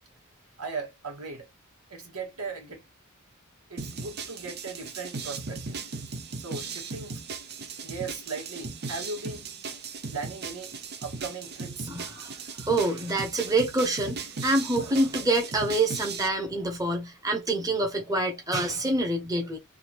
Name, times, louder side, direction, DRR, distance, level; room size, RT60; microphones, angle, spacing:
voice 1, 0.6-1.5 1.9-2.8 3.7-5.8 6.4-7.2 7.8-9.4 10.1-10.7 11.0-11.9 12.2-12.3, right 4 dB, 85° right, 1.8 m, -38 dB
sound 1, 3.8-16.3, right 4 dB, 50° right, 0.7 m, -37 dB
voice 2, 11.9-12.4 12.6-19.6, right 2 dB, 15° right, 1.1 m, -26 dB
3.5 x 2.6 x 3.0 m
head